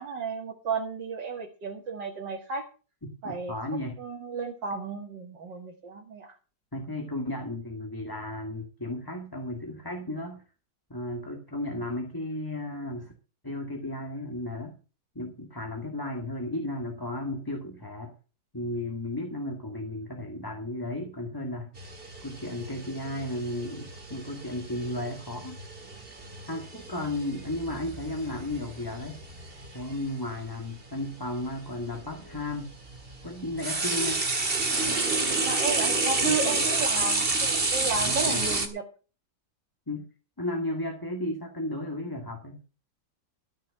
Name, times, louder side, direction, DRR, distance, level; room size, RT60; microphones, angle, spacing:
voice 1, 0.0-2.7 3.2-3.6 4.0-6.4 35.5-38.8, right 4 dB, 75° right, -1 dB, 2.6 m, -33 dB
voice 2, 3.0-4.0 6.7-10.4 10.9-13.1 13.4-14.7 15.2-18.1 18.5-21.7 22.2-25.6 26.5-29.2 29.7-32.7 33.2-34.2 36.2-36.4 38.0-38.4 39.9-40.0 40.4-42.6, left 1 dB, 10° left, 1 dB, 1.9 m, -34 dB
sound 1, 21.8-29.9 31.0-31.1 31.9-38.7, right 3 dB, 30° right, 2.1 m, -30 dB
14.0 x 6.6 x 7.8 m, 0.36 s
omnidirectional pair, 2.0 m